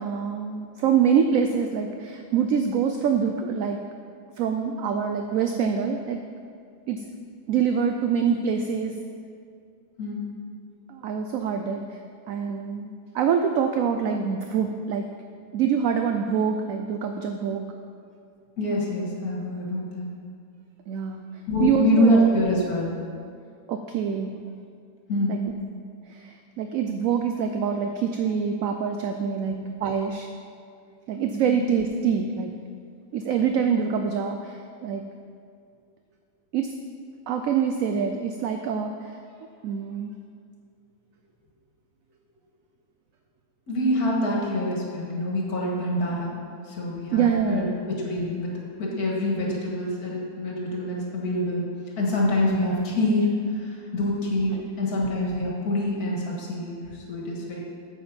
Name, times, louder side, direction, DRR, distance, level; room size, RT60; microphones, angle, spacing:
voice 1, 0.0-3.8 4.4-6.2 6.9-7.0 7.5-8.9 10.9-12.0 12.3-15.1 15.5-17.6 20.9-21.2 21.6-22.3 23.7-24.5 25.3-25.4 26.1-30.3 31.1-32.5 33.1-35.0 36.5-36.7 37.3-39.2 39.6-40.1 47.1-47.7 54.6-54.7, right 7 dB, 70° right, 5 dB, 0.9 m, -25 dB
voice 2, 18.6-20.1 21.5-22.9 25.1-25.4 29.4-29.6 31.5-31.6 43.7-46.3 46.7-48.5 48.8-51.6 52.0-57.6, left 1 dB, 70° left, -3 dB, 2.1 m, -25 dB
8.4 x 7.8 x 5.2 m, 2.3 s
omnidirectional pair, 1.7 m